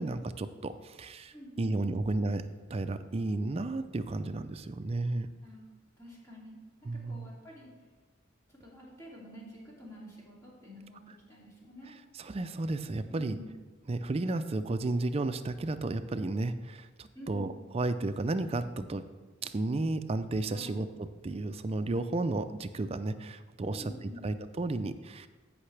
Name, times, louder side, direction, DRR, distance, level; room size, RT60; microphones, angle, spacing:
voice 1, 0.0-2.4 2.7-5.3 6.9-7.3 12.2-13.4 13.9-19.0 19.4-23.8 24.2-25.3, right 2 dB, 30° right, 10 dB, 0.4 m, -33 dB
voice 2, 1.3-2.0 5.4-5.7 6.0-6.6 6.9-7.7 8.5-11.9 13.1-13.5 17.1-17.5 20.5-20.7 23.7-24.3, left 1 dB, 15° left, -5 dB, 2.6 m, -49 dB
14.5 x 5.6 x 3.3 m, 1.4 s
head